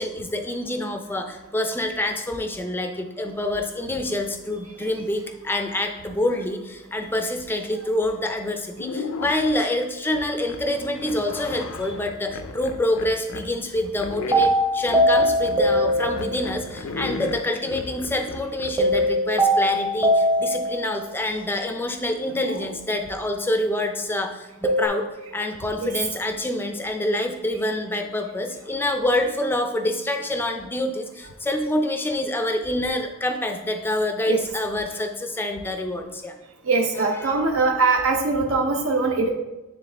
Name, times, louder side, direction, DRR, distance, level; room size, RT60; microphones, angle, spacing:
voice 1, 0.0-36.4 37.2-37.4, left 1 dB, 10° left, 5 dB, 0.5 m, -26 dB
sound 1, 8.2-8.4 8.8-9.6 10.1-13.5 14.0-19.2 22.3-22.8, left 3 dB, 75° left, 0.5 m, -35 dB
sound 2, 14.3-16.6 18.8-21.1 24.6-24.9, equal, 20° right, 0.8 m, -21 dB
voice 2, 36.7-39.3, right 3 dB, 70° right, 2 dB, 0.7 m, -22 dB
9.6 x 3.6 x 3.4 m, 1.0 s
head